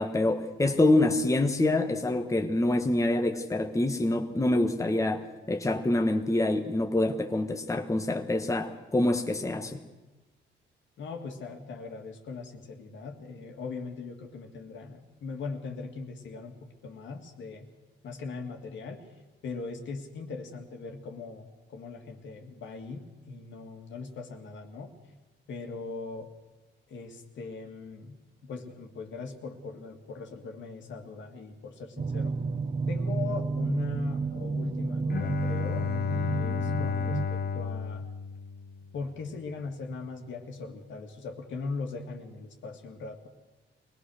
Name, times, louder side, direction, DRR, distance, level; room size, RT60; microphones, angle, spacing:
voice 1, 0.0-9.8, left 2 dB, 15° left, 5 dB, 1.4 m, -26 dB
voice 2, 11.0-17.7 18.0-19.1 19.4-24.9 25.5-26.3 26.9-32.3 32.9-38.0 38.9-43.3, left 4 dB, 70° left, 3 dB, 2.5 m, -40 dB
sound 1, 32.0-37.3, right 4 dB, 30° right, 1.0 m, -31 dB
Bowed string instrument, 35.1-39.0, left 6 dB, 50° left, 1.3 m, -32 dB
23.0 x 19.0 x 6.5 m, 1.1 s
cardioid pair, 90°, 20 cm